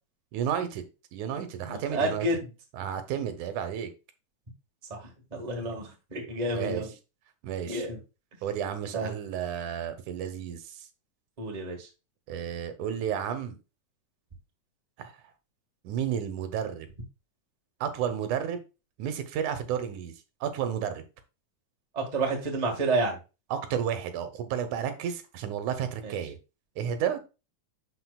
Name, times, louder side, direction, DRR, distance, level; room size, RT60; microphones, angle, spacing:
voice 1, 0.3-0.9 1.1-2.3 2.7-3.9 6.5-6.8 7.4-7.8 8.4-10.7 12.3-13.5 15.0-15.1 15.8-16.9 17.8-18.6 19.0-20.1 20.4-21.0 23.5-26.4 26.8-27.2, right 8 dB, 80° right, 2.3 m, -32 dB
voice 2, 1.7-2.4 4.9-5.0 5.3-6.9 7.6-8.0 8.9-9.1 11.4-11.9 21.9-23.2 26.0-26.1, right 2 dB, 20° right, 1.0 m, -30 dB
11.5 x 4.1 x 2.3 m
omnidirectional pair, 3.4 m